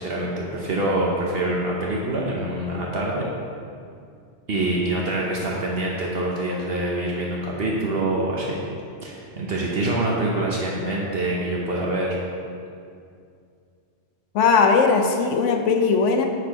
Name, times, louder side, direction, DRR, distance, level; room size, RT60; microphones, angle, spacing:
voice 1, 0.0-3.3 4.5-8.6 9.0-12.2, right 1 dB, 60° right, -3 dB, 1.0 m, -25 dB
voice 2, 14.3-16.3, left 5 dB, 80° left, 5 dB, 1.0 m, -19 dB
9.5 x 4.3 x 4.1 m, 2.4 s
omnidirectional pair, 1.2 m